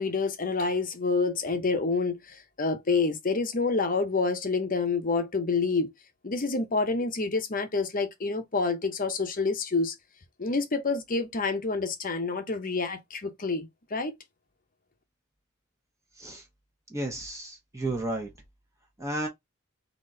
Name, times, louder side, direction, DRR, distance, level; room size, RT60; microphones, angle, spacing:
voice 1, 0.0-5.9 6.2-9.9 10.4-14.1, left 4 dB, 40° left, 0.8 m, -28 dB
voice 2, 16.9-18.3 19.0-19.3, right 1 dB, 15° right, 0.9 m, -32 dB
4.0 x 3.0 x 3.8 m
head